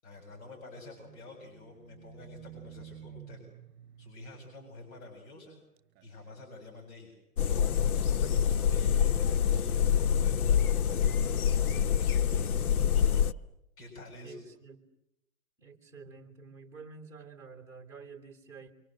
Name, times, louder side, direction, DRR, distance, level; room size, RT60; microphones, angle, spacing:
voice 1, 0.0-3.4 4.0-5.6 6.0-7.1 7.8-12.1 12.8-13.2 13.8-14.4, left 2 dB, 50° left, 2 dB, 7.5 m, -49 dB
Livestock farm animals working animals, 0.7-5.5 5.8-6.5 6.9-7.0, right 12 dB, 30° right, 3.7 m, -52 dB
sound 1, 7.4-13.3, left 8 dB, 80° left, 1.0 m, -26 dB
voice 2, 14.2-14.8 15.6-18.7, right 5 dB, 5° right, 2 dB, 3.5 m, -49 dB
27.5 x 25.5 x 7.8 m, 0.85 s
hypercardioid pair, 150°, 43 cm